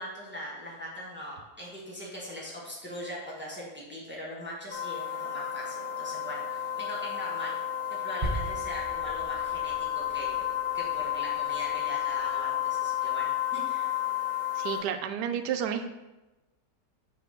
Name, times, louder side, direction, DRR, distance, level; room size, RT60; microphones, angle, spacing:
voice 1, 0.0-7.6 7.9-10.5 10.7-13.9, equal, 5° right, -5 dB, 1.2 m, -40 dB
sound 1, 4.7-14.8, left 11 dB, 30° left, 1.5 m, -32 dB
sound 2, 8.2-12.6, right 2 dB, 30° right, 0.9 m, -39 dB
voice 2, 14.6-15.9, right 8 dB, 75° right, 8 dB, 1.1 m, -31 dB
6.2 x 3.0 x 5.7 m, 1.1 s
omnidirectional pair, 1.9 m